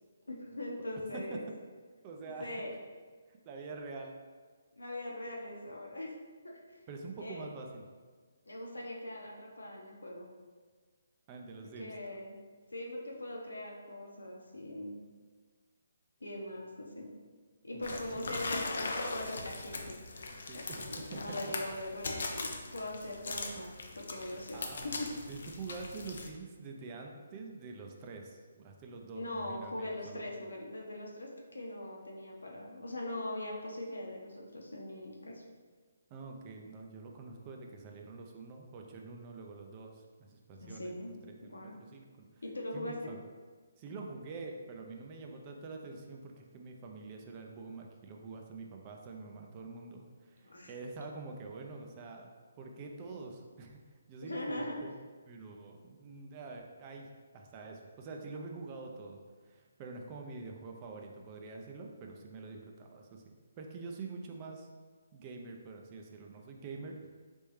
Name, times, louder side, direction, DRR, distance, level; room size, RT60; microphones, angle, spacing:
voice 1, 0.3-1.4 2.4-2.7 4.7-6.1 6.4-6.8 7.2-7.5 8.5-10.3 11.6-12.4 12.7-15.0 16.2-17.1 17.6-20.0 20.5-25.1 29.1-35.4 40.6-41.1 41.4-41.8 42.4-43.1 50.4-50.7 53.1-53.2 54.2-54.8, left 1 dB, 90° left, -1 dB, 0.9 m, -41 dB
voice 2, 2.0-2.6 3.3-4.1 6.9-7.8 11.3-12.2 17.7-18.3 20.3-20.9 21.1-21.4 23.5-23.6 24.5-30.2 36.1-40.9 41.2-42.4 42.7-43.2 43.8-52.3 52.6-53.8 54.1-54.9 55.3-57.1 57.3-64.7 65.1-67.0, right 3 dB, 30° right, 2 dB, 0.5 m, -46 dB
sound 1, 17.8-26.3, left 3 dB, 65° left, 0.6 m, -40 dB
4.2 x 3.5 x 3.2 m, 1.5 s
figure-of-eight pair, 145°, 0 cm